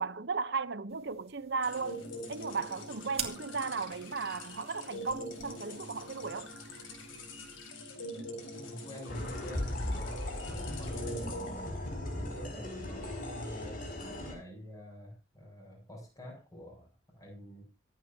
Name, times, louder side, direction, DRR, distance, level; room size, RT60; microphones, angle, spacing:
voice 1, 0.0-6.5, right 4 dB, 60° right, 0.8 m, -36 dB
sound 1, 0.9-7.7, right 7 dB, 30° right, 2.3 m, -47 dB
sound 2, 1.6-12.1, left 1 dB, 85° left, 4.7 m, -44 dB
voice 2, 8.6-11.7 12.2-17.6, equal, 20° left, 7.8 m, -46 dB
sound 3, 9.1-14.3, left 1 dB, 45° left, 5.8 m, -38 dB
24.5 x 9.2 x 2.8 m
head